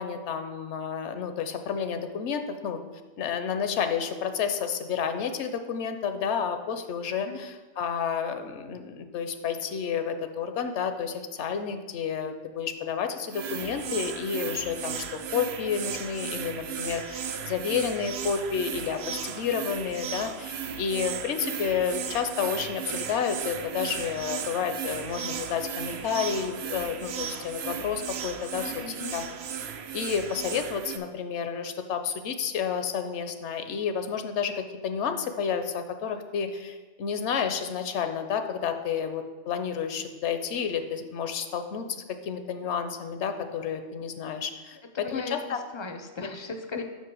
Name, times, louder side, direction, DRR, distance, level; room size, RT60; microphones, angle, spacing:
voice 1, 0.0-2.8 3.2-29.2 29.9-45.6 46.2-46.3 46.7-46.8, left 7 dB, 75° left, 8 dB, 0.9 m, -30 dB
sound 1, 13.3-31.0, right 8 dB, 65° right, 0.8 m, -35 dB
voice 2, 28.5-29.2 44.8-46.8, left 4 dB, 40° left, 6 dB, 0.4 m, -38 dB
5.6 x 5.2 x 6.1 m, 1.3 s
omnidirectional pair, 1.2 m